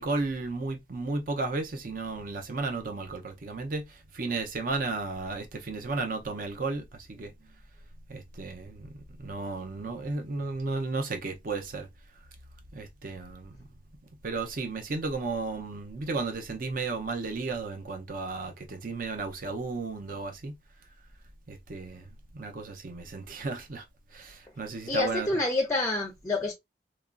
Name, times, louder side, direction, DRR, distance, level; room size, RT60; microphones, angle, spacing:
voice 1, 0.0-3.9 4.1-7.3 8.1-8.9 9.2-11.9 12.7-13.6 14.2-20.6 21.5-22.0 22.3-23.8 24.1-25.4, right 3 dB, 50° right, 0.6 m, -33 dB
voice 2, 24.9-26.5, left 2 dB, 15° left, 0.4 m, -27 dB
3.0 x 2.3 x 2.3 m
head